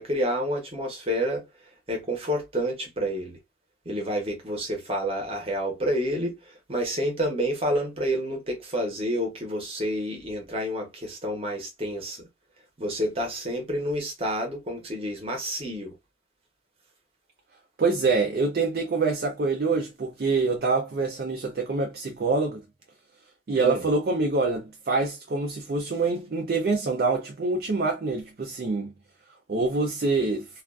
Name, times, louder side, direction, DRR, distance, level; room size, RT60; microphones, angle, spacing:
voice 1, 0.0-1.5 1.9-3.4 3.8-12.3 12.8-15.9 23.6-23.8, equal, 30° right, 0.8 m, -29 dB
voice 2, 17.8-22.6 23.5-28.9 29.5-30.5, right 3 dB, 55° right, 0.4 m, -25 dB
2.4 x 2.2 x 2.3 m
head